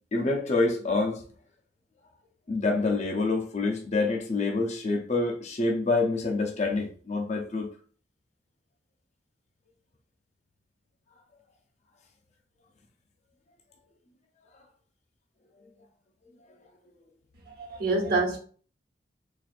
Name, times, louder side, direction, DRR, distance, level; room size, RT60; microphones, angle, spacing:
voice 1, 0.1-1.2 2.5-7.7, left 3 dB, 40° left, 0.6 m, -27 dB
voice 2, 17.5-18.4, right 3 dB, 55° right, 1.1 m, -27 dB
4.2 x 2.5 x 2.5 m
head